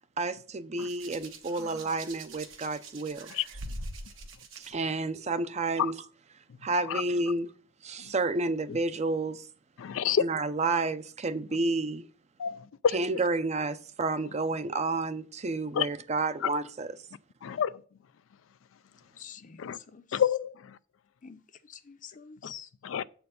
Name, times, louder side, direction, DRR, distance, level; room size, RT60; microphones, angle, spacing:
voice 1, 0.2-3.3 4.6-6.0 6.6-7.5 7.8-9.5 10.2-12.0 12.9-16.9, right 3 dB, 35° right, 0.5 m, -30 dB
Hands, 0.8-4.7 5.7-6.0, right 2 dB, 80° right, 1.2 m, -43 dB
voice 2, 9.8-10.2 12.4-13.2 15.7-15.9 17.4-17.8 19.6-19.8 20.1-20.8 22.8-23.0, left 8 dB, 85° left, 0.4 m, -28 dB
voice 3, 19.2-20.2 21.2-22.7, left 8 dB, 40° left, 0.7 m, -47 dB
7.6 x 4.5 x 6.6 m
head